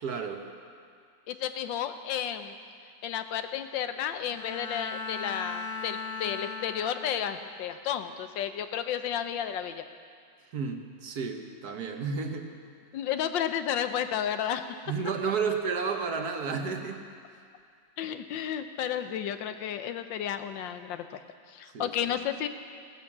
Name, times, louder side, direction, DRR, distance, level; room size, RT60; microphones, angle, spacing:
voice 1, 0.0-0.4 10.5-12.5 14.9-17.0 21.7-22.1, right 5 dB, 60° right, 4 dB, 1.5 m, -32 dB
voice 2, 1.3-2.5 3.0-9.8 12.9-14.8 18.0-21.2 21.5-22.5, left 9 dB, 85° left, 9 dB, 1.5 m, -32 dB
Bowed string instrument, 4.3-7.5, left 3 dB, 25° left, 2.7 m, -38 dB
17.0 x 9.9 x 7.3 m, 2.2 s
omnidirectional pair, 2.0 m